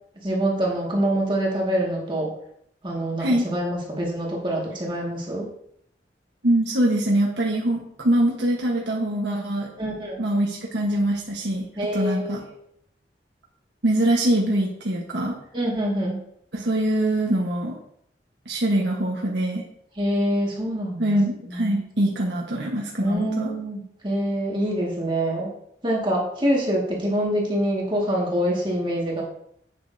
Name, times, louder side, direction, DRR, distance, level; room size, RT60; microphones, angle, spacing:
voice 1, 0.2-2.3 2.8-5.5 9.8-10.2 11.8-12.5 15.5-16.2 20.0-21.1 21.5-21.8 23.0-25.5 25.8-29.2, right 1 dB, 25° right, -3 dB, 2.0 m, -25 dB
voice 2, 6.4-9.7 10.2-11.7 11.9-12.4 13.8-15.3 16.5-17.8 18.5-19.7 21.0-23.5, right 1 dB, 75° right, -2 dB, 1.3 m, -23 dB
8.5 x 8.3 x 2.8 m, 0.71 s
head